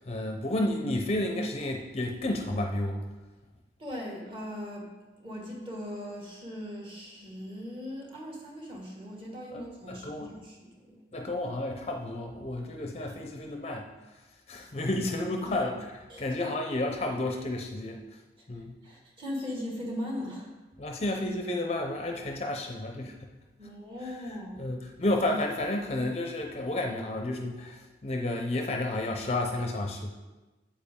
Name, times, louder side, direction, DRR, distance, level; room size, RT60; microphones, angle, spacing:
voice 1, 0.1-3.0 9.5-10.3 11.1-13.9 14.5-15.8 16.2-18.0 18.5-18.7 20.8-23.3 24.6-30.1, left 1 dB, 35° left, 3 dB, 0.6 m, -31 dB
voice 2, 3.8-4.9 5.2-11.0 15.4-15.6 16.1-16.3 18.8-20.5 23.6-24.6, left 1 dB, 30° right, -1 dB, 1.7 m, -39 dB
8.6 x 7.4 x 3.7 m, 1.2 s
head